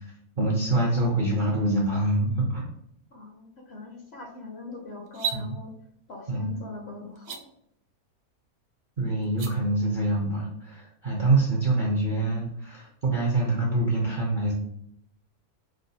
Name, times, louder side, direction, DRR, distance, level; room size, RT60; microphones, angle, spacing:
voice 1, 0.4-2.7 5.3-5.6 6.3-6.6 9.0-14.5, right 2 dB, 55° right, -3 dB, 0.5 m, -25 dB
voice 2, 3.1-5.7 6.1-7.5, left 3 dB, 55° left, 0 dB, 0.8 m, -42 dB
sound 1, 5.1-5.4 7.2-7.4 9.2-9.5, right 7 dB, 90° right, 1.1 m, -31 dB
4.7 x 2.2 x 2.6 m, 0.74 s
omnidirectional pair, 1.6 m